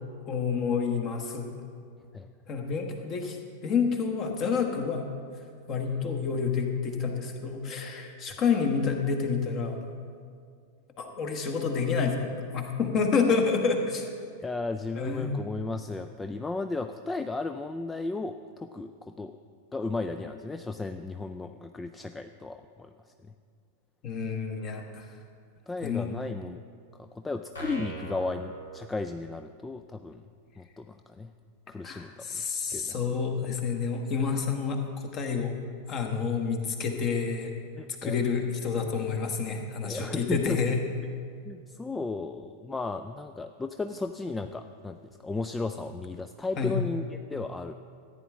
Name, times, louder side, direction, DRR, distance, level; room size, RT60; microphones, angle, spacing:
voice 1, 0.3-1.5 2.5-3.4 3.6-5.1 5.7-9.8 11.0-12.2 12.5-14.1 15.0-15.3 24.0-25.1 25.8-26.1 31.8-35.5 35.9-37.5 38.0-40.8 46.6-46.8, left 5 dB, 35° left, 4 dB, 1.3 m, -28 dB
voice 2, 14.4-19.3 19.7-22.9 25.7-26.6 27.0-30.2 30.6-31.3 31.7-32.4 32.7-33.0 37.8-38.2 39.8-40.6 41.4-45.0 45.2-47.7, left 3 dB, 10° left, 8 dB, 0.3 m, -35 dB
sound 1, 27.5-29.5, right 3 dB, 75° left, 2.3 m, -41 dB
14.5 x 9.2 x 3.6 m, 2.2 s
figure-of-eight pair, 90°, 0 cm